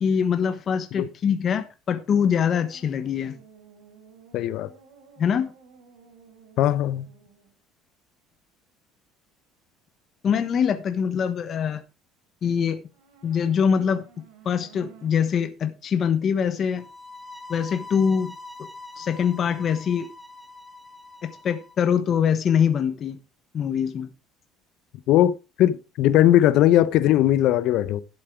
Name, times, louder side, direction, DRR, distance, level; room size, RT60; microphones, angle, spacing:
voice 1, 0.0-3.4 5.2-5.5 10.2-11.8 12.4-12.8 13.2-14.0 14.4-16.8 17.5-18.3 19.0-20.1 21.2-23.2 23.5-24.1, left 7 dB, 35° left, 1.2 m, -23 dB
sound 1, 2.1-7.6 12.8-15.1, right 6 dB, 80° right, 3.8 m, -53 dB
voice 2, 4.3-4.7 6.6-7.1 25.1-25.3 25.6-28.0, left 12 dB, 60° left, 0.9 m, -19 dB
sound 2, 16.8-21.8, left 2 dB, ahead, 1.9 m, -43 dB
11.5 x 7.6 x 4.6 m
cardioid pair, 135°, 0 cm